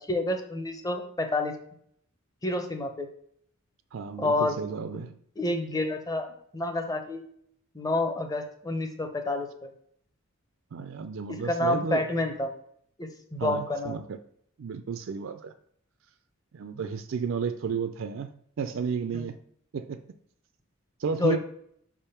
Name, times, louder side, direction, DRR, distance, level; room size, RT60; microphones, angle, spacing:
voice 1, 0.1-1.5 2.4-3.1 4.2-4.6 5.4-7.2 7.7-9.7 11.4-12.5 13.0-14.0 19.1-19.3 21.2-21.4, left 2 dB, 15° left, 5 dB, 0.7 m, -29 dB
voice 2, 3.9-5.2 10.7-12.0 13.4-14.2 14.6-15.5 16.5-18.3 18.6-19.4 19.7-20.0 21.0-21.4, right 5 dB, 60° right, 9 dB, 0.4 m, -32 dB
5.1 x 3.5 x 5.7 m, 0.65 s
head